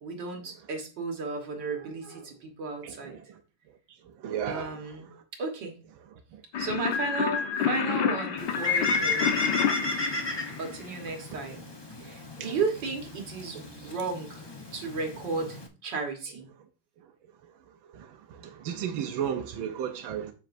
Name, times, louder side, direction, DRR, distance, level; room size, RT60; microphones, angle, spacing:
voice 1, 0.0-3.2 4.4-5.1 5.4-5.8 6.6-9.7 10.6-11.7 12.0-14.4 14.7-16.5, right 3 dB, 65° right, 2.1 m, -34 dB
voice 2, 4.2-4.7 12.4-12.5 18.4-20.3, right 9 dB, 85° right, 1.5 m, -32 dB
sound 1, 6.5-11.0, left 7 dB, 65° left, 1.5 m, -29 dB
Bird, 8.4-15.7, left 3 dB, 35° left, 0.4 m, -33 dB
8.0 x 7.4 x 2.6 m
omnidirectional pair, 2.1 m